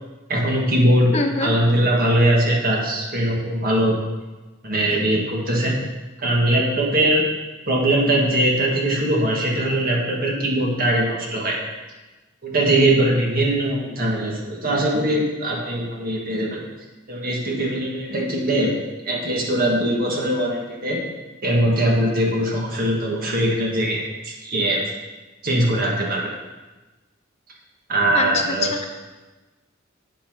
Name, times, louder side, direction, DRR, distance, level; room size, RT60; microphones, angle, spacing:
voice 1, 0.3-4.0 4.6-5.8 6.2-7.2 7.7-11.6 12.4-16.6 17.1-18.7 19.1-21.0 21.4-24.8 25.4-26.3 27.9-28.8, right 1 dB, 45° right, -2 dB, 1.8 m, -21 dB
voice 2, 1.1-1.5 28.1-28.6, left 2 dB, 35° left, 5 dB, 0.7 m, -23 dB
8.3 x 5.2 x 6.1 m, 1.2 s
head